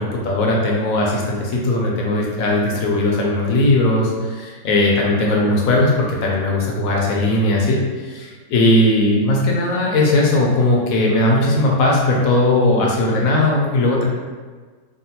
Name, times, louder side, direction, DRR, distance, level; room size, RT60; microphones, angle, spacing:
voice 1, 0.0-14.0, left 1 dB, 70° left, -2 dB, 0.9 m, -18 dB
3.6 x 2.1 x 2.8 m, 1.4 s
omnidirectional pair, 1.8 m